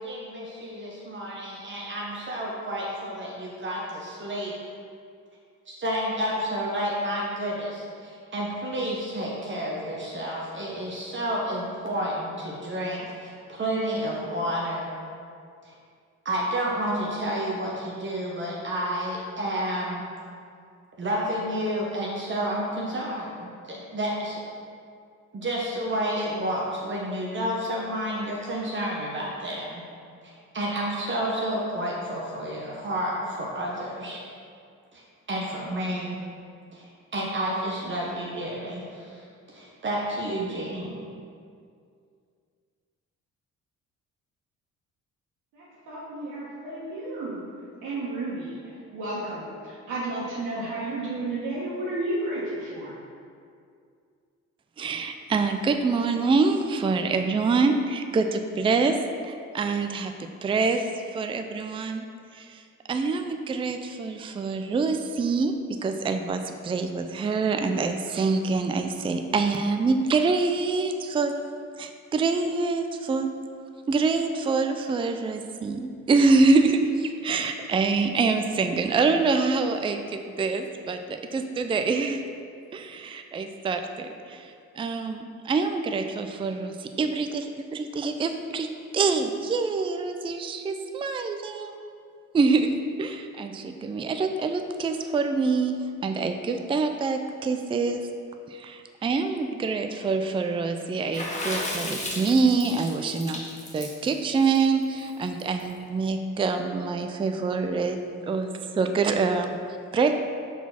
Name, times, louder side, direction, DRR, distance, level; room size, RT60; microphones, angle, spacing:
voice 1, 0.0-4.5 5.7-14.9 15.6-15.7 16.2-20.0 21.0-24.4 25.3-29.8 30.2-34.2 34.9-35.0 35.3-36.2 36.7-41.0, equal, 40° right, -3 dB, 0.9 m, -30 dB
voice 2, 45.5-47.4 47.8-53.0, right 2 dB, 90° right, -10 dB, 1.3 m, -32 dB
voice 3, 54.8-59.0 59.2-60.1 60.4-62.1 62.3-62.6 62.9-71.3 71.8-73.3 73.9-82.2 82.7-88.7 88.9-91.8 92.3-95.8 96.0-98.0 98.5-103.4 103.7-108.0 108.2-110.2, right 4 dB, 20° right, 7 dB, 0.3 m, -25 dB
Water / Splash splatter, 101.1-105.6, left 1 dB, 25° left, 1.2 m, -34 dB
4.6 x 4.2 x 5.6 m, 2.3 s
cardioid pair, 90°, 30 cm